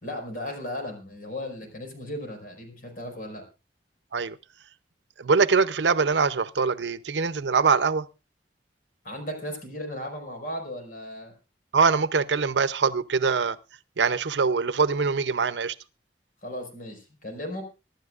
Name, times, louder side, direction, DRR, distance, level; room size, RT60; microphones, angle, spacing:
voice 1, 0.0-3.4 9.0-11.3 16.4-17.6, left 1 dB, 55° left, 5.1 m, -36 dB
voice 2, 5.2-8.0 11.7-13.6 14.0-15.8, right 5 dB, 85° right, 0.7 m, -23 dB
24.5 x 11.5 x 2.5 m
head